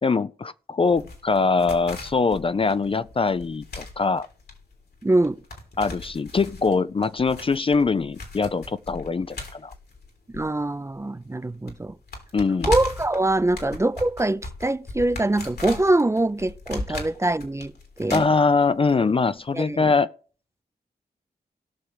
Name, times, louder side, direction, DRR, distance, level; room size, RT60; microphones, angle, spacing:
voice 1, 0.0-4.3 5.8-9.7 12.3-12.7 16.9-17.0 18.1-20.1, left 4 dB, 35° left, 0.4 m, -23 dB
sound 1, 0.9-11.0 11.2-11.3 11.7-18.9 19.2-19.3, left 2 dB, 75° left, 3.4 m, -37 dB
voice 2, 5.0-5.4 10.3-11.9 12.6-17.7 18.0-18.3 19.5-19.9, right 2 dB, 15° right, 0.5 m, -23 dB
16.5 x 6.5 x 4.8 m
wide cardioid pair, 105°, 17 cm